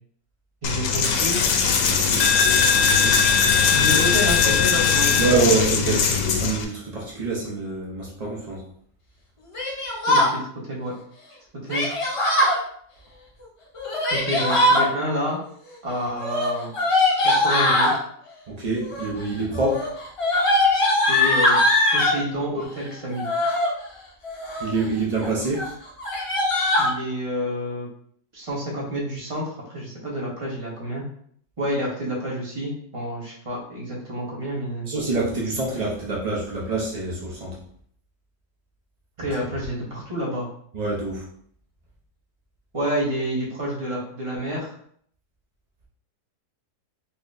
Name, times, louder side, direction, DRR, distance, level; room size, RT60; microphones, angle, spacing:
Coin (dropping), 0.6-6.7, left 6 dB, 70° left, 0.9 m, -20 dB
voice 1, 0.6-1.5 3.7-6.0 10.1-10.9 11.7-11.9 14.1-15.4 15.8-16.7 17.2-17.9 21.1-21.6 21.9-23.3 26.8-27.9 28.3-31.0 31.6-34.9 39.2-40.5 42.7-44.7, equal, 25° right, -4 dB, 0.9 m, -29 dB
voice 2, 1.9-2.2 2.8-3.2 5.2-8.6 18.6-19.8 24.6-25.6 34.9-37.5 40.7-41.2, right 3 dB, 70° right, -4 dB, 0.3 m, -26 dB
Yell, 9.5-10.3 11.7-12.6 13.7-14.9 16.2-18.0 18.8-19.2 19.5-22.2 23.1-23.7 24.2-24.8 25.2-25.3 25.5-25.7 26.0-26.9, left 1 dB, 50° left, 0.3 m, -21 dB
4.1 x 2.9 x 2.6 m, 0.64 s
omnidirectional pair, 1.8 m